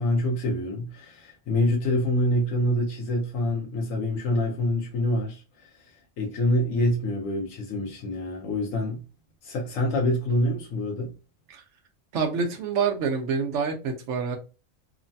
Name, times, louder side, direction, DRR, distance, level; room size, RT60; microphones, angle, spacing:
voice 1, 0.0-5.9 6.2-9.0 9.4-11.1, left 1 dB, 75° left, 1.0 m, -26 dB
voice 2, 12.1-14.4, right 5 dB, 65° right, 0.9 m, -27 dB
3.1 x 2.1 x 2.6 m
omnidirectional pair, 1.4 m